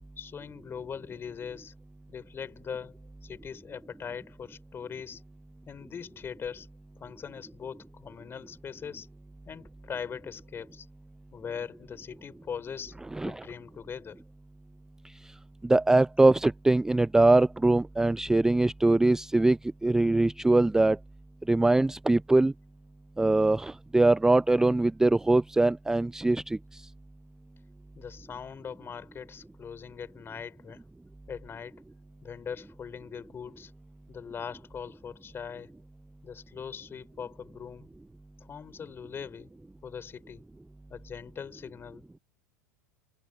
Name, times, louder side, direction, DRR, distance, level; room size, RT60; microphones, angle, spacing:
voice 1, 0.2-1.7 2.1-5.2 5.7-6.7 7.0-9.1 9.4-10.9 11.3-14.2 27.9-30.8 31.3-31.8 32.2-33.7 34.1-35.7 36.2-37.9 38.4-39.5 39.8-40.4 40.9-42.0, left 7 dB, 25° left, 4.8 m, -41 dB
voice 2, 15.6-21.0 21.5-22.5 23.2-26.6, right 2 dB, 5° right, 0.4 m, -22 dB
hypercardioid pair, 90°, 9 cm